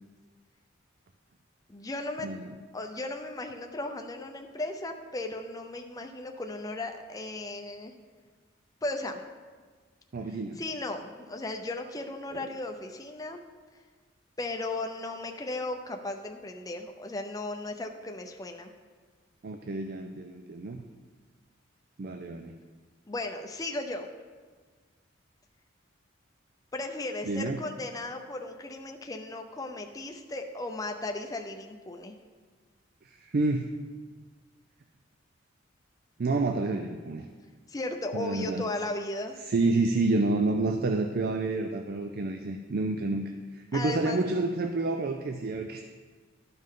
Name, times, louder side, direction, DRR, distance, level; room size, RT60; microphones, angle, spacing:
voice 1, 1.7-2.3 2.7-7.9 8.8-9.2 10.6-13.4 14.4-18.7 23.1-24.1 26.7-32.1 37.7-39.4 43.7-44.2, left 2 dB, 20° left, 4 dB, 0.6 m, -36 dB
voice 2, 2.2-2.5 10.1-10.6 12.3-12.5 19.4-20.8 22.0-22.5 27.3-27.6 33.0-33.7 36.2-37.3 38.1-38.6 39.5-45.8, right 3 dB, 50° right, 5 dB, 0.4 m, -29 dB
12.5 x 5.5 x 3.7 m, 1.5 s
head